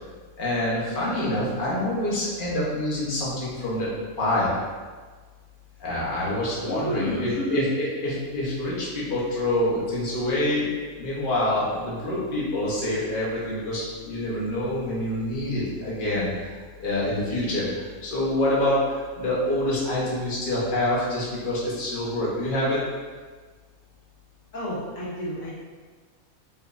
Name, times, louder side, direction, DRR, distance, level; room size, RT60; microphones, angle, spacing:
voice 1, 0.4-3.9 4.2-4.5 5.8-22.8, left 1 dB, 40° left, -7 dB, 1.1 m, -26 dB
voice 2, 6.6-7.6 24.5-25.5, equal, 65° left, -7 dB, 1.4 m, -30 dB
4.8 x 3.1 x 2.6 m, 1.5 s
omnidirectional pair, 1.5 m